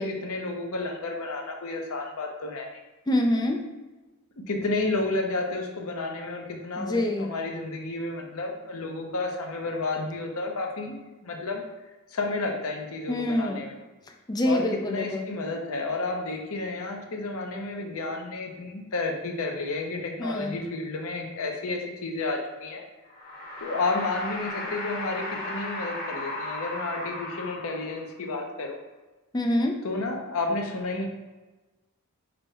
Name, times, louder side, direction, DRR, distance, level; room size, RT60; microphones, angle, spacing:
voice 1, 0.0-2.7 4.5-11.6 12.1-13.8 14.4-22.8 23.6-28.8 29.8-31.1, left 3 dB, 70° left, 2 dB, 0.7 m, -31 dB
voice 2, 3.1-3.6 6.8-7.3 13.1-13.7 14.3-15.3 20.2-20.6 29.3-29.8, left 1 dB, 20° left, 3 dB, 0.4 m, -26 dB
sound 1, 23.1-28.1, left 1 dB, 45° left, 1.2 m, -35 dB
5.3 x 2.2 x 4.1 m, 1.2 s
head